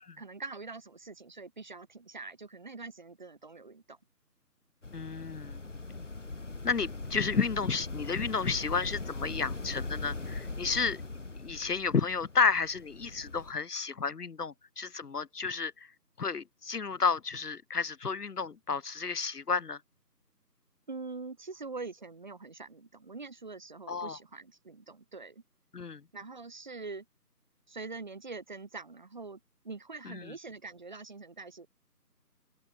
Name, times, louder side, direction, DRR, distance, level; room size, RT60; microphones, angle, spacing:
voice 1, 0.2-4.0 20.9-25.4 26.1-27.1 27.7-29.4 29.6-31.7, right 3 dB, 30° right, 4.3 m, -44 dB
sound 1, 4.8-13.5, left 3 dB, 45° left, 2.5 m, -40 dB
voice 2, 4.9-5.6 6.6-11.0 11.4-15.7 16.2-19.8 23.9-24.2 25.7-26.0 30.1-30.2, left 5 dB, 70° left, 0.8 m, -31 dB
open air
figure-of-eight pair, 170°, 49 cm